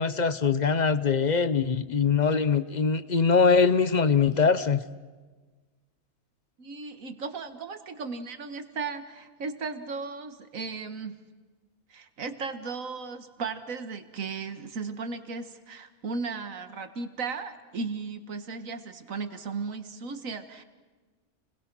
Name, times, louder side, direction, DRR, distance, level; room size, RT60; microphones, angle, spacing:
voice 1, 0.0-4.8, left 5 dB, 40° left, 13 dB, 0.8 m, -22 dB
voice 2, 6.6-11.2 11.9-20.6, right 4 dB, 65° right, 9 dB, 1.9 m, -36 dB
29.5 x 21.0 x 6.2 m, 1.3 s
omnidirectional pair, 1.5 m